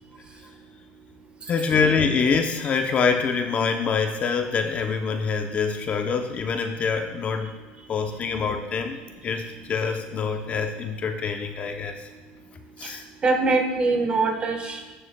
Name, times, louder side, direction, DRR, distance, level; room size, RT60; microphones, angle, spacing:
voice 1, 1.5-7.5 7.9-9.0 9.2-12.1 12.8-13.0, left 5 dB, 35° left, 6 dB, 0.7 m, -25 dB
voice 2, 13.2-14.9, right 3 dB, 30° right, 4 dB, 1.2 m, -23 dB
14.0 x 6.7 x 2.2 m, 1.3 s
supercardioid pair, 105°, 4 cm